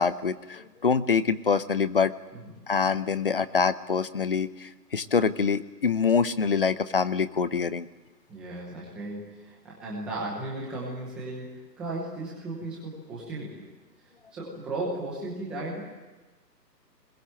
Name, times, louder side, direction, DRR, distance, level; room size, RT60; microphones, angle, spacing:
voice 1, 0.0-2.1 2.7-7.9, left 5 dB, 35° left, 15 dB, 0.7 m, -25 dB
voice 2, 8.3-13.6 14.3-16.0, right 2 dB, ahead, -4 dB, 0.9 m, -35 dB
21.5 x 21.0 x 8.8 m, 1.2 s
hypercardioid pair, 160°, 50 cm